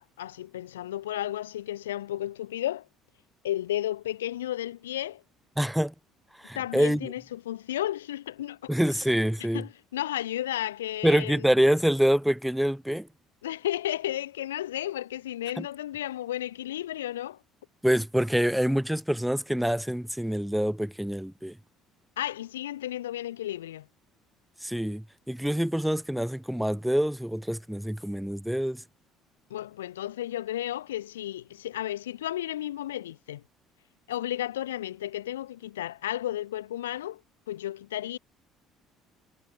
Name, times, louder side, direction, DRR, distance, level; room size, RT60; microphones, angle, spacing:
voice 1, 0.0-2.9 3.4-5.2 6.5-8.7 9.5-11.5 13.4-17.4 22.2-23.9 29.5-33.4 34.1-37.2 37.5-38.2, left 13 dB, 85° left, 4.7 m, -33 dB
voice 2, 5.6-5.9 6.4-7.1 8.7-9.6 11.0-13.1 15.6-15.7 17.8-21.5 24.6-28.8, equal, 5° right, 4.3 m, -26 dB
hypercardioid pair, 60°, 0 cm